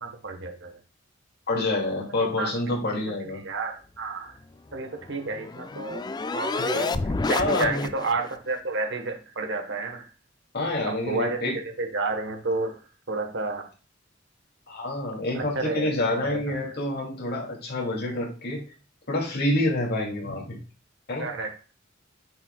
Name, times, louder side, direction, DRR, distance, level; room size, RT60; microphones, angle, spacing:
voice 1, 0.0-0.8 2.2-2.5 3.4-4.4 4.7-6.0 6.3-6.9 7.3-10.1 10.9-12.8 13.1-13.7 15.3-16.6 21.2-21.5, right 3 dB, 65° right, 5 dB, 1.3 m, -31 dB
voice 2, 1.5-3.4 6.7-7.0 7.3-7.9 10.5-11.5 14.7-18.6 19.1-20.6 21.1-21.3, left 2 dB, 55° left, -2 dB, 2.6 m, -27 dB
sound 1, 4.7-8.3, left 3 dB, 20° left, 0.3 m, -30 dB
9.3 x 5.7 x 2.3 m, 0.36 s
head